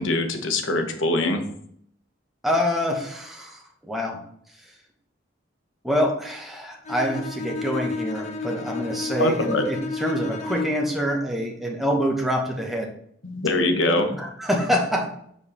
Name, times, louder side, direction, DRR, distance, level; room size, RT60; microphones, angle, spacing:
voice 1, 0.0-1.4 9.2-9.6 13.2-14.2, left 2 dB, 85° left, 6 dB, 1.1 m, -23 dB
voice 2, 2.4-4.2 5.8-12.9 14.2-15.1, equal, ahead, 0 dB, 1.0 m, -26 dB
Bowed string instrument, 6.8-10.9, left 4 dB, 35° left, 0.8 m, -31 dB
5.3 x 4.6 x 5.6 m, 0.68 s
head